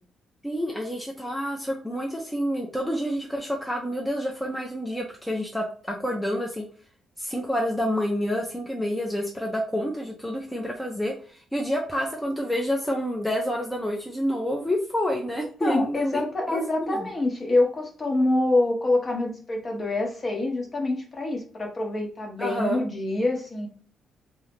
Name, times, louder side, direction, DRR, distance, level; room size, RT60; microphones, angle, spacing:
voice 1, 0.4-6.6 7.2-17.1 22.4-22.8, equal, 5° left, 0 dB, 0.6 m, -28 dB
voice 2, 15.6-23.7, left 2 dB, 35° left, 1 dB, 1.0 m, -26 dB
2.7 x 2.2 x 3.5 m, 0.43 s
cardioid pair, 90°, 0 cm